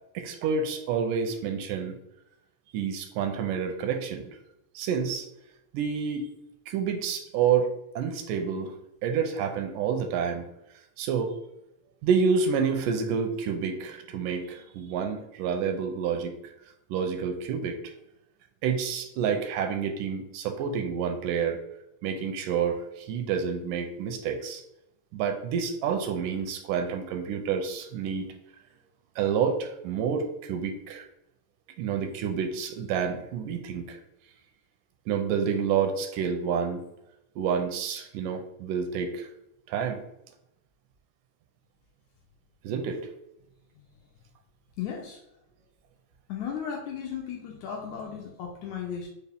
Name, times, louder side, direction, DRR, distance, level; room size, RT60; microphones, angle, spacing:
voice 1, 0.1-2.0 2.7-4.3 4.8-5.3 5.7-6.3 6.7-8.7 9.0-10.5 11.0-11.4 12.0-16.5 16.9-17.9 18.6-21.6 22.0-24.6 25.1-28.3 29.2-31.0 31.8-34.0 35.1-36.8 37.4-39.3 39.7-40.0 42.6-43.0, right 6 dB, 85° right, 5 dB, 2.1 m, -28 dB
voice 2, 44.8-45.2 46.3-49.1, left 8 dB, 80° left, 0 dB, 1.7 m, -35 dB
5.4 x 2.3 x 3.4 m, 0.86 s
omnidirectional pair, 3.7 m